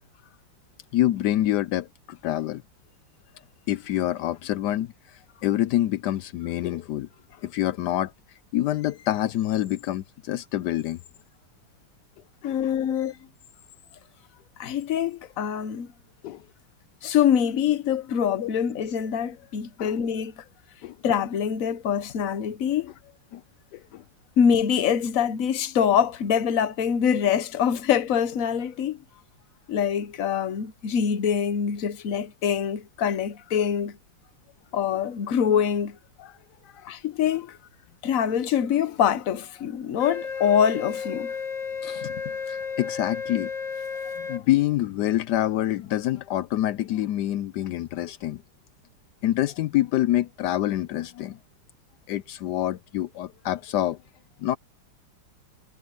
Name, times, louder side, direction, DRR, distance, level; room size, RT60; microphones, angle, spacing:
voice 1, 0.9-2.6 3.7-8.1 8.5-11.0 12.4-13.1 16.2-16.4 18.4-18.5 19.8-19.9 20.8-21.0 23.3-23.4 23.7-24.0 36.2-36.4 36.6-36.9 41.8-42.1 42.5-43.5 44.2-48.4 49.2-51.4 52.1-54.0 54.4-54.6, left 14 dB, 80° left, 0.9 m, -27 dB
voice 2, 12.4-13.1 14.6-15.9 17.0-20.4 21.0-22.9 24.4-29.0 29.7-34.0 34.7-36.0 36.9-37.6 38.0-41.3 42.1-42.2, left 8 dB, 50° left, 1.0 m, -24 dB
Wind instrument woodwind instrument, 40.0-44.4, left 6 dB, 20° left, 2.6 m, -33 dB
omnidirectional pair, 2.4 m